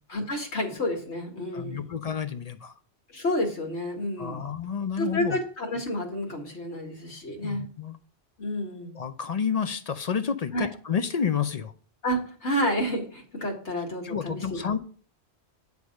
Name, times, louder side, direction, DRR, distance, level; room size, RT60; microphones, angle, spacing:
voice 1, 0.1-1.9 3.1-4.4 5.0-7.7 8.4-9.0 10.5-10.7 12.0-14.6, equal, 80° left, 2.2 m, -30 dB
voice 2, 1.5-2.7 4.2-5.4 7.4-8.0 8.9-11.7 14.0-14.8, left 7 dB, 45° left, 0.5 m, -30 dB
9.5 x 3.5 x 6.3 m
omnidirectional pair, 1.2 m